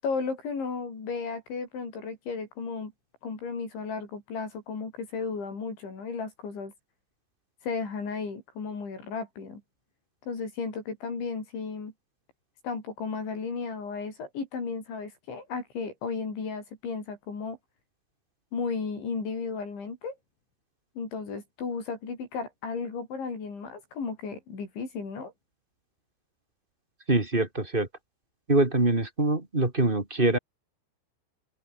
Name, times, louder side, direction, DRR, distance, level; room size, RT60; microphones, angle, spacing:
voice 1, 0.0-2.9 3.2-6.7 7.6-9.6 10.2-11.9 12.6-17.6 18.5-20.2 21.0-25.3, left 5 dB, 65° left, 9.3 m, -34 dB
voice 2, 27.1-27.9 28.5-30.4, right 2 dB, 15° right, 1.9 m, -24 dB
omnidirectional pair, 5.8 m